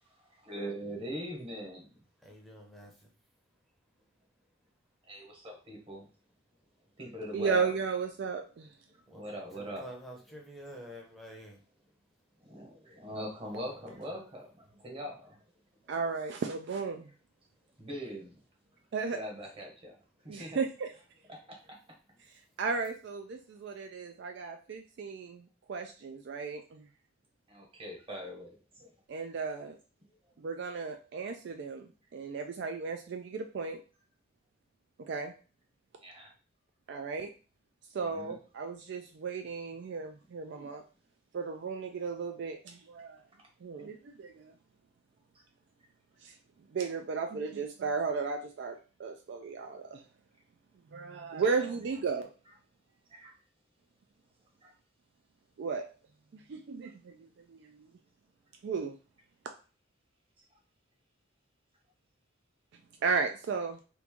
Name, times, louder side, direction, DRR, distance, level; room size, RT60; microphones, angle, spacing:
voice 1, 0.5-2.0 5.1-6.1 7.0-7.7 9.1-9.8 12.4-15.4 17.8-18.4 19.1-20.0 20.2-20.6 21.3-21.8 27.5-28.9 36.0-36.3 38.0-38.3 51.4-51.5 53.1-53.3 54.6-54.7, equal, 30° right, 0 dB, 1.0 m, -42 dB
voice 2, 2.2-3.1 9.1-11.6 13.7-14.2, equal, ahead, -2 dB, 0.7 m, -49 dB
voice 3, 7.3-8.7 15.9-17.1 18.9-19.2 20.3-20.9 22.6-26.9 29.1-29.8 30.4-33.8 35.1-35.3 36.9-37.3 37.9-40.8 41.3-43.2 43.6-44.5 46.2-46.4 46.7-50.0 50.9-52.3 55.6-55.8 56.3-57.9 58.6-59.0 63.0-63.8, right 5 dB, 60° right, 5 dB, 0.3 m, -35 dB
3.1 x 2.5 x 3.5 m, 0.36 s
head